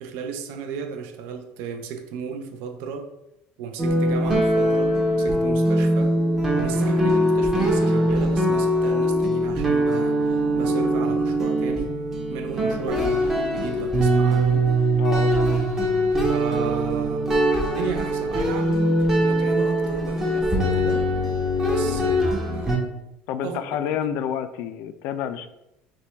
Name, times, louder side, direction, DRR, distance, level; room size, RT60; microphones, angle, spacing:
voice 1, 0.0-3.1 3.6-6.2 6.6-12.0 12.3-14.7 16.3-17.4 17.7-21.1 21.6-22.8 23.4-24.1, right 6 dB, 65° right, 6 dB, 0.5 m, -34 dB
sound 1, 3.8-22.8, right 1 dB, 10° right, 0.7 m, -22 dB
voice 2, 14.9-15.6 21.8-22.0 23.3-25.5, left 9 dB, 60° left, 11 dB, 0.3 m, -30 dB
5.7 x 2.2 x 3.3 m, 0.87 s
cardioid pair, 165°, 4 cm